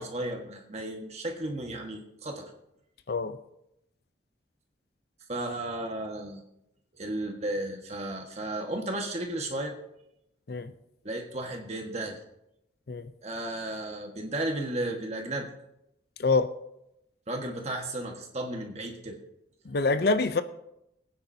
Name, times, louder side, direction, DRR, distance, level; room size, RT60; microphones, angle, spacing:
voice 1, 0.0-2.5 5.3-6.4 6.9-9.7 11.0-12.2 13.2-15.5 17.3-19.2, right 1 dB, 35° right, 2 dB, 1.5 m, -34 dB
voice 2, 19.7-20.4, left 3 dB, 55° left, 11 dB, 0.5 m, -25 dB
21.5 x 9.5 x 2.8 m, 0.84 s
head